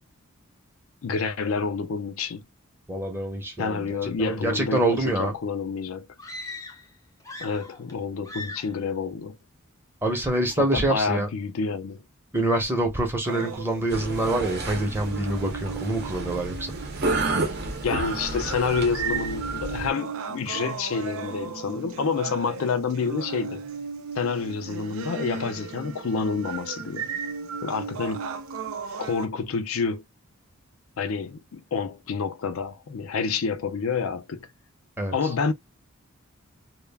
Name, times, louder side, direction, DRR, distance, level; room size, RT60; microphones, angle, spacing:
voice 1, 1.0-2.4 3.6-6.1 7.4-9.4 10.6-12.0 17.8-23.7 24.2-27.1 27.6-28.3 29.0-30.0 31.0-34.5 35.1-35.5, left 5 dB, 75° left, 0.4 m, -28 dB
voice 2, 2.9-5.3 10.0-11.3 12.3-16.7 35.0-35.1, right 1 dB, 10° right, 0.7 m, -26 dB
sound 1, 6.2-6.9 7.2-8.0 8.2-8.8, left 2 dB, 15° left, 0.4 m, -39 dB
sound 2, 13.3-29.2, right 6 dB, 80° right, 0.5 m, -35 dB
sound 3, 13.9-19.9, right 2 dB, 50° right, 0.7 m, -31 dB
2.3 x 2.1 x 3.3 m
head